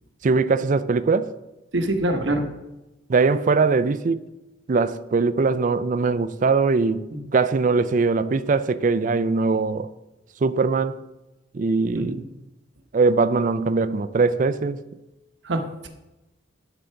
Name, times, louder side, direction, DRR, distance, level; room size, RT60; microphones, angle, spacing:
voice 1, 0.2-1.3 3.1-4.2 4.7-7.0 7.3-9.9 10.4-11.0 11.5-12.2 12.9-14.8, right 4 dB, 40° right, 0.4 m, -21 dB
voice 2, 1.7-2.5 7.1-7.2 11.9-12.2 15.4-15.9, right 1 dB, 65° right, 1.0 m, -25 dB
11.5 x 3.9 x 5.8 m
head